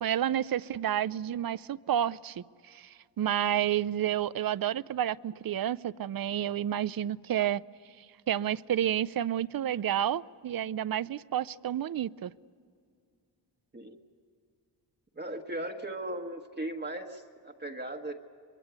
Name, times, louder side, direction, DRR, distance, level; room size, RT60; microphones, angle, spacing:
voice 1, 0.0-7.6 8.0-12.3, right 11 dB, 55° right, 19 dB, 0.6 m, -30 dB
voice 2, 15.1-18.1, right 1 dB, 25° right, 2 dB, 1.4 m, -37 dB
24.0 x 23.0 x 8.2 m, 2.2 s
wide cardioid pair, 95°, 43 cm